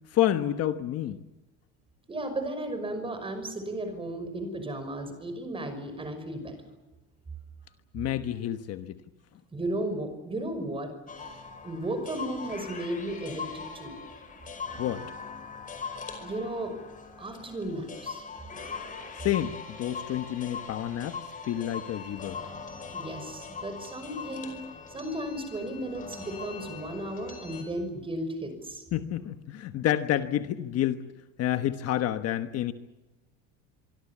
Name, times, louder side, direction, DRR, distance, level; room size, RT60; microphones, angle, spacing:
voice 1, 0.1-1.2 7.9-8.9 14.8-15.0 19.2-21.2 21.4-22.4 28.9-31.0 31.4-32.7, left 12 dB, 45° left, 9 dB, 1.2 m, -29 dB
voice 2, 2.1-6.6 9.5-10.9 11.2-11.3 11.6-14.0 16.2-16.7 17.2-18.2 22.9-24.6 24.9-28.8, right 1 dB, 15° right, 8 dB, 5.7 m, -34 dB
sound 1, 11.1-27.6, left 5 dB, 20° left, 5.1 m, -41 dB
25.5 x 24.5 x 7.4 m, 1.1 s
cardioid pair, 165°, 35 cm